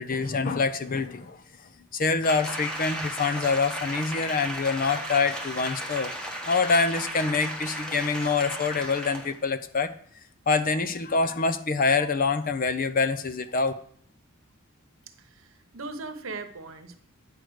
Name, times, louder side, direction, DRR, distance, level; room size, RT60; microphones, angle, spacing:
voice 1, 0.0-1.4 1.9-6.1 6.5-9.9 10.5-13.7, left 4 dB, 40° left, 10 dB, 0.6 m, -25 dB
Applause, 2.2-9.4 9.8-9.9, right 1 dB, 5° left, 1.2 m, -35 dB
voice 2, 15.2-17.0, right 3 dB, 65° right, 8 dB, 1.0 m, -39 dB
9.3 x 4.9 x 6.3 m, 0.62 s
head